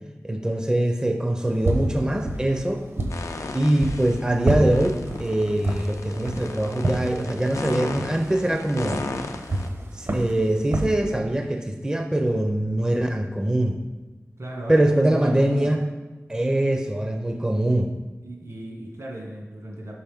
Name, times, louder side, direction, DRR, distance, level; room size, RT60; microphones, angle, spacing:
voice 1, 0.2-2.8 3.5-9.0 9.9-13.8 14.7-15.8 16.3-17.9, right 1 dB, 15° right, 4 dB, 0.4 m, -23 dB
sound 1, 1.4-10.9, right 1 dB, 55° right, 0.7 m, -30 dB
sound 2, 3.1-4.3 4.6-9.7, left 3 dB, 90° left, 0.4 m, -35 dB
voice 2, 14.4-15.7 18.2-19.9, right 1 dB, 75° right, -1 dB, 1.6 m, -35 dB
5.6 x 5.5 x 3.4 m, 1.2 s
wide cardioid pair, 85°, 5 cm